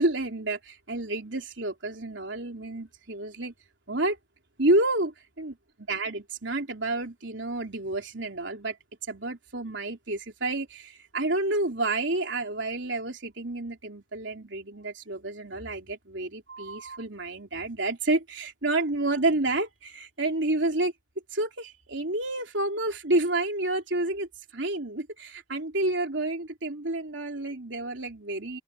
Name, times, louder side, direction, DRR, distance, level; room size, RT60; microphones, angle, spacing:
voice 1, 0.0-3.5 3.9-4.2 4.6-5.5 5.9-8.8 9.1-20.9 21.3-28.6, right 2 dB, 70° right, 3.5 m, -29 dB
open air
head